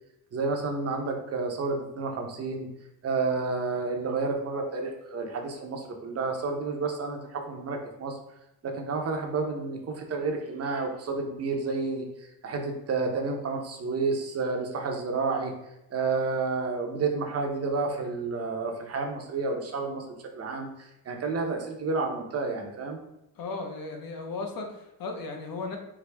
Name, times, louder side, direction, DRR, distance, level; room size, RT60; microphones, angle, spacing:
voice 1, 0.3-2.7 3.0-8.2 8.6-15.5 15.9-20.0 20.3-23.0, right 4 dB, 40° right, 3 dB, 0.7 m, -30 dB
voice 2, 23.4-25.8, left 3 dB, 60° left, 3 dB, 0.9 m, -36 dB
4.8 x 2.6 x 3.3 m, 0.88 s
cardioid pair, 160°, 38 cm